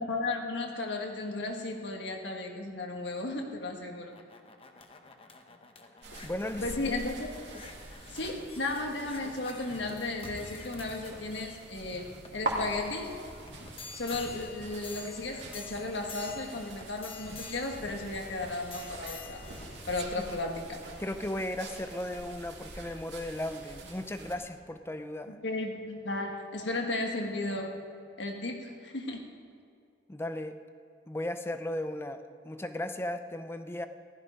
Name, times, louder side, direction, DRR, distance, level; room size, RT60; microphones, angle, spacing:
voice 1, 0.0-4.1 6.6-7.3 8.1-13.1 13.9-19.4 19.9-20.8 25.3-27.7 28.2-29.3, left 2 dB, 85° left, 2 dB, 1.6 m, -35 dB
sound 1, 3.8-21.4 22.0-22.1, left 4 dB, 30° left, 0.9 m, -49 dB
sound 2, 6.0-24.3, right 2 dB, 80° right, 2.3 m, -44 dB
voice 2, 6.2-7.0 20.1-20.3 21.0-25.4 30.1-30.6 31.1-33.9, left 1 dB, 15° left, 9 dB, 0.6 m, -36 dB
15.5 x 12.5 x 5.2 m, 2.3 s
head